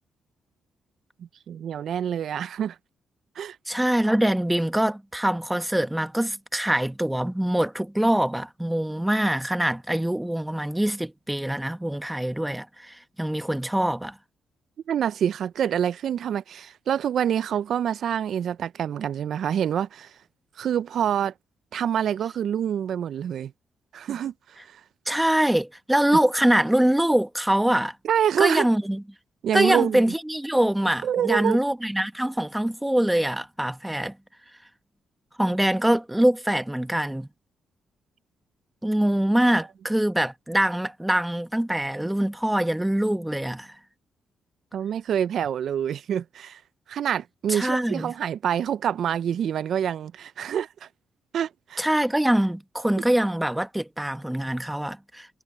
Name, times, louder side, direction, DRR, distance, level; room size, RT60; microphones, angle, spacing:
voice 1, 1.5-2.8 3.4-3.6 14.9-20.2 20.6-21.3 21.7-23.5 23.9-24.8 28.0-28.7 29.4-30.1 31.0-31.6 44.7-46.6 46.9-50.9 51.3-51.8, right 9 dB, 70° right, 0.4 m, -26 dB
voice 2, 3.7-14.2 25.1-28.0 28.4-29.0 29.5-34.2 35.4-37.3 38.8-43.7 47.5-48.1 51.8-55.3, right 1 dB, 5° right, 1.4 m, -24 dB
supercardioid pair, 60°, 0 cm